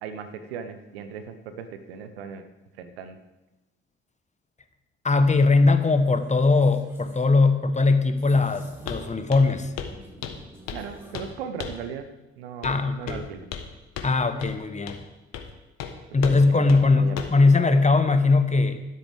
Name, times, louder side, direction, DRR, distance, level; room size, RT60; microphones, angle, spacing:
voice 1, 0.0-2.5 2.8-3.2 10.7-12.1 12.4-13.5 16.2-17.3, right 7 dB, 80° right, 9 dB, 0.9 m, -37 dB
voice 2, 5.0-9.7 12.6-13.2 14.0-15.0 16.1-18.8, left 3 dB, 25° left, 9 dB, 1.3 m, -20 dB
sound 1, 5.8-7.3 8.1-9.3 9.6-11.3, equal, 10° right, 4.4 m, -49 dB
Walk footsteps, 8.9-9.0 9.3-9.5 9.8-10.0 10.2-10.9 11.1-11.3 11.6-11.9 12.6-12.8 13.1-13.7 14.0-14.1 14.4-14.5 14.9-15.0 15.3-15.5 15.8-15.9 16.2-16.4 16.7-16.8 17.2-17.4, left 7 dB, 60° left, 1.4 m, -34 dB
13.0 x 12.0 x 3.6 m, 1.0 s
figure-of-eight pair, 45°, 30 cm